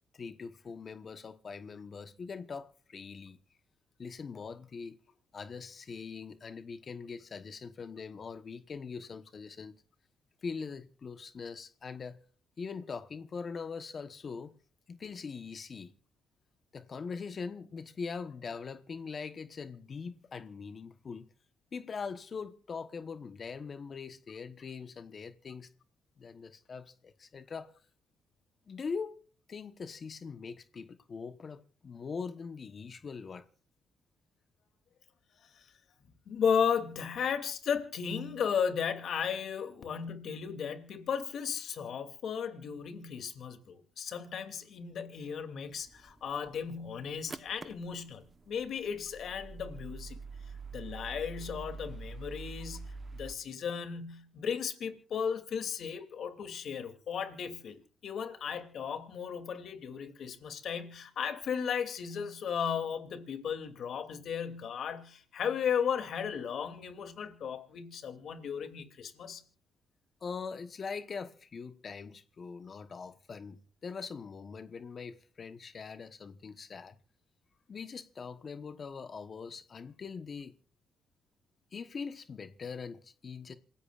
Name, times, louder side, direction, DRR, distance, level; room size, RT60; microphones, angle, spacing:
voice 1, 0.1-3.4 4.0-5.0 5.3-9.7 10.4-12.2 12.6-14.5 14.9-15.9 16.7-21.3 21.7-25.7 26.2-27.8 28.7-29.2 29.5-33.5 70.2-77.0 77.7-80.6 81.7-83.6, left 5 dB, 45° left, 1.1 m, -42 dB
voice 2, 36.3-50.2 50.7-69.4, left 7 dB, 65° left, 2.7 m, -35 dB
sound 1, 45.7-53.4, right 4 dB, 30° right, 1.0 m, -46 dB
27.5 x 16.0 x 2.5 m
cardioid pair, 90°, 0 cm